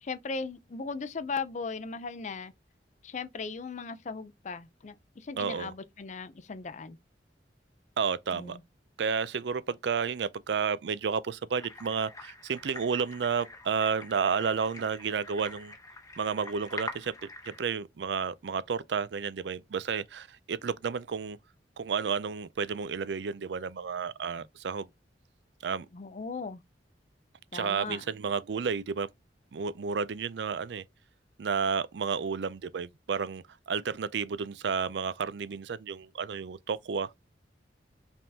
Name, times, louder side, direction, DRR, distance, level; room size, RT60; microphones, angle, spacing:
voice 1, 0.0-2.5 3.0-7.0 8.3-8.6 25.9-26.6 27.5-28.0, left 4 dB, 40° left, 0.5 m, -38 dB
voice 2, 5.4-5.7 8.0-8.6 9.0-15.8 16.2-17.1 17.4-21.4 21.8-24.9 25.6-25.9 27.5-29.1 29.5-30.8 31.4-37.2, right 6 dB, 70° right, 0.4 m, -31 dB
sound 1, 11.5-17.6, left 2 dB, 20° left, 0.9 m, -45 dB
5.4 x 3.5 x 2.7 m
head